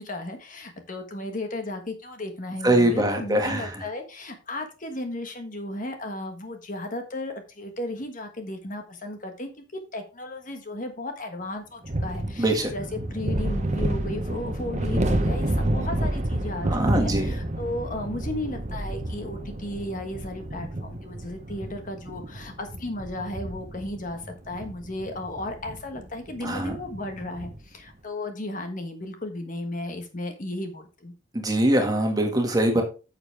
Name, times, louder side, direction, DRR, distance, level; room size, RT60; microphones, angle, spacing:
voice 1, 0.0-9.6 9.9-31.1, left 1 dB, 40° left, 6 dB, 1.4 m, -35 dB
voice 2, 2.6-3.8 12.4-12.7 16.7-17.3 26.4-26.8 31.3-32.8, right 1 dB, 20° right, 3 dB, 1.8 m, -23 dB
sound 1, 11.8-27.7, right 1 dB, 35° right, 1.0 m, -30 dB
9.6 x 7.0 x 3.4 m, 0.32 s
head